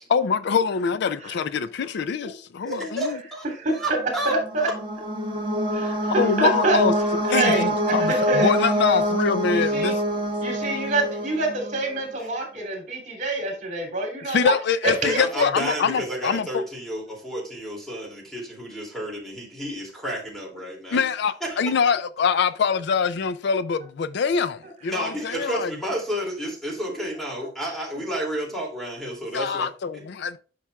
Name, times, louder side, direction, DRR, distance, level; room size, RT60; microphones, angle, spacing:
voice 1, 0.1-3.2 6.2-6.9 7.3-10.0 14.3-16.6 20.9-25.7 29.3-30.4, left 6 dB, 65° left, 0.4 m, -24 dB
voice 2, 2.6-3.4 3.7-4.7 12.2-12.3 15.0-21.0 21.4-21.8 24.9-29.7 29.9-30.0, right 1 dB, ahead, 2.6 m, -31 dB
voice 3, 3.6-4.0 4.2-4.7 5.7-6.8 7.2-8.5 9.5-10.0 10.4-14.5 14.8-15.2, right 2 dB, 45° right, 2.9 m, -26 dB
sound 1, 4.3-12.0, equal, 25° right, 1.4 m, -25 dB
9.9 x 5.9 x 2.3 m
head